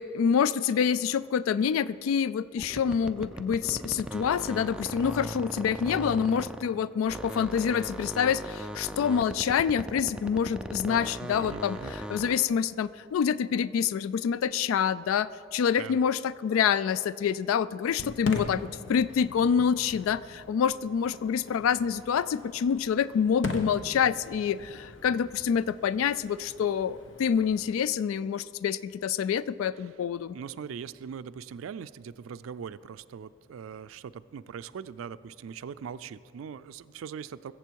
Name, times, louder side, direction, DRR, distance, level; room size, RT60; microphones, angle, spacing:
voice 1, 0.0-30.4, left 7 dB, 90° left, 17 dB, 0.3 m, -27 dB
sound 1, 2.6-6.8 7.1-12.5, equal, 5° right, 0.4 m, -38 dB
voice 2, 11.4-11.9 15.7-16.0 18.0-18.3 29.8-30.0 30.3-37.5, right 7 dB, 85° right, 15 dB, 0.3 m, -41 dB
Fireworks, 17.9-27.7, left 2 dB, 65° left, 0.9 m, -41 dB
21.5 x 7.5 x 4.6 m, 2.5 s
head